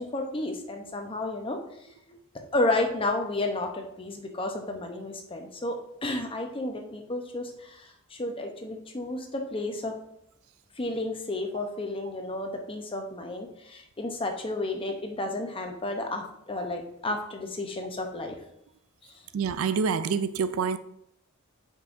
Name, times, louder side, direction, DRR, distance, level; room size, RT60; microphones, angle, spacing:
voice 1, 0.0-1.6 2.1-2.2 2.5-9.9 10.8-18.4, left 2 dB, 25° left, 0.8 m, -32 dB
voice 2, 19.3-20.8, right 6 dB, 80° right, 0.4 m, -26 dB
7.9 x 5.4 x 2.6 m
head